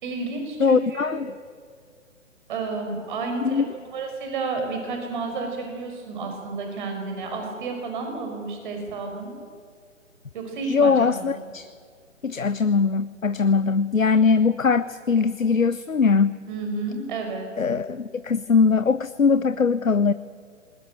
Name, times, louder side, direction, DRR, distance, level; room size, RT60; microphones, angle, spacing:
voice 1, 0.0-1.1 2.5-9.3 10.3-11.4 16.5-17.5, right 3 dB, 40° right, 4 dB, 5.3 m, -31 dB
voice 2, 0.6-1.3 3.4-3.6 10.6-11.7 12.2-16.4 17.6-20.1, left 5 dB, 85° left, 14 dB, 0.8 m, -21 dB
21.0 x 19.0 x 9.0 m, 2.1 s
figure-of-eight pair, 130°, 39 cm